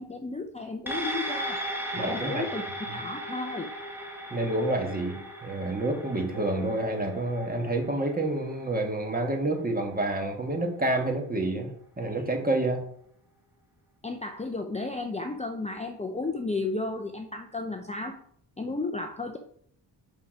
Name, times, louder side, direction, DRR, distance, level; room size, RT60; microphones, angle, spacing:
voice 1, 0.0-1.6 1.9-2.6 2.9-3.7 14.0-18.2 18.6-19.4, left 3 dB, 15° left, 4 dB, 0.6 m, -33 dB
sound 1, 0.9-9.5 9.9-10.0, right 1 dB, 5° right, 1.2 m, -37 dB
voice 2, 1.9-2.5 2.9-3.0 4.3-12.8, right 2 dB, 20° right, 3 dB, 1.4 m, -28 dB
5.8 x 5.7 x 5.0 m, 0.64 s
wide cardioid pair, 105°, 43 cm